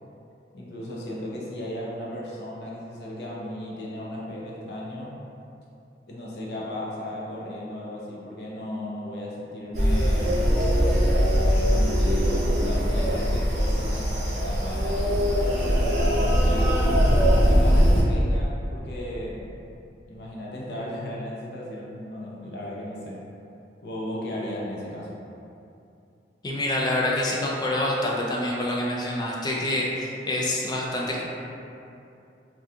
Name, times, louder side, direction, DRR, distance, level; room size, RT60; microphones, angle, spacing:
voice 1, 0.5-5.2 6.1-10.4 11.7-15.5 16.4-17.0 17.5-19.5 20.1-23.2 23.8-25.2, left 1 dB, 65° left, -4 dB, 0.6 m, -35 dB
sound 1, 9.7-18.0, equal, 45° right, 0.8 m, -21 dB
voice 2, 26.4-31.2, left 1 dB, 25° left, -3 dB, 0.4 m, -26 dB
2.7 x 2.3 x 3.4 m, 2.6 s
head